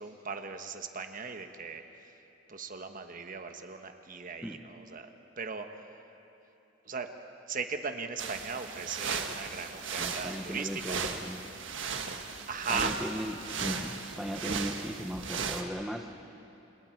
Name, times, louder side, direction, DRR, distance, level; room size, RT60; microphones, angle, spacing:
voice 1, 0.0-1.8 2.5-5.1 5.4-5.7 6.8-7.1 7.5-11.2 12.5-12.9 14.4-14.5, right 4 dB, 45° right, 6 dB, 1.3 m, -38 dB
sound 1, 8.2-15.6, right 5 dB, 75° right, 1.5 m, -36 dB
voice 2, 9.8-11.5 12.7-16.3, equal, ahead, 4 dB, 0.9 m, -38 dB
30.0 x 27.5 x 4.6 m, 2.9 s
head